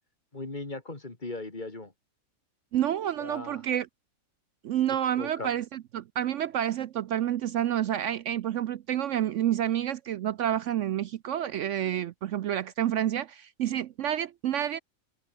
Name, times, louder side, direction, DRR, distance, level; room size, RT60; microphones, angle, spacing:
voice 1, 0.3-1.9 3.2-3.6 5.2-5.6, left 2 dB, 35° left, 2.6 m, -38 dB
voice 2, 2.7-3.9 4.6-14.8, right 11 dB, 70° right, 0.9 m, -29 dB
omnidirectional pair, 1.5 m